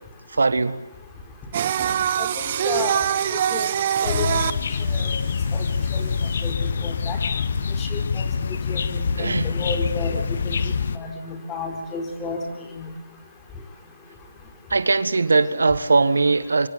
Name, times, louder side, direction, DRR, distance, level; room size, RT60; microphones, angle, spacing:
voice 1, 0.3-0.8 9.2-9.5 14.7-16.7, right 3 dB, 75° right, 14 dB, 1.7 m, -20 dB
Singing, 1.5-6.5, right 9 dB, 35° right, 1.2 m, -24 dB
sound 1, 4.0-11.0, left 5 dB, 50° left, 1.4 m, -25 dB
voice 2, 6.8-7.2 7.8-8.3 8.7-12.4 12.8-12.9, left 4 dB, 10° left, 3 dB, 4.1 m, -31 dB
25.0 x 24.5 x 9.4 m, 0.87 s
figure-of-eight pair, 155°, 0 cm